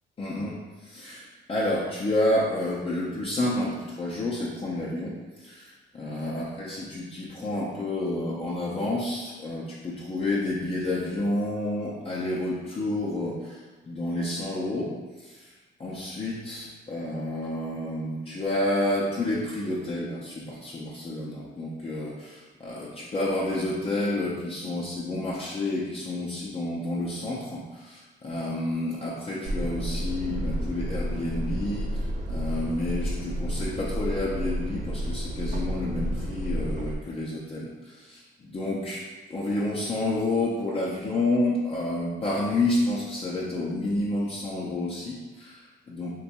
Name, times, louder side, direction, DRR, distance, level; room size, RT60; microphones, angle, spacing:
voice 1, 0.2-15.5 15.8-46.1, left 1 dB, 30° left, -6 dB, 0.5 m, -30 dB
sound 1, 29.4-37.0, equal, 40° right, 0.4 m, -31 dB
2.7 x 2.3 x 4.0 m, 1.2 s
cardioid pair, 90°, 20 cm